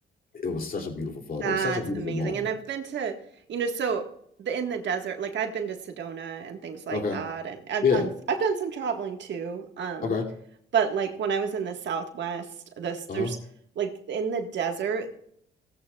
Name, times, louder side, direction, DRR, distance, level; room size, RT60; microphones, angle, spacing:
voice 1, 0.3-2.5 6.9-7.2 7.8-8.1 10.0-10.3 13.1-13.3, left 5 dB, 50° left, 2 dB, 2.7 m, -28 dB
voice 2, 1.4-3.2 3.5-4.0 4.4-10.1 10.7-12.4 12.8-13.4 13.7-15.1, right 6 dB, 65° right, 4 dB, 1.6 m, -30 dB
17.5 x 14.0 x 2.3 m, 0.69 s
cardioid pair, 90°, 20 cm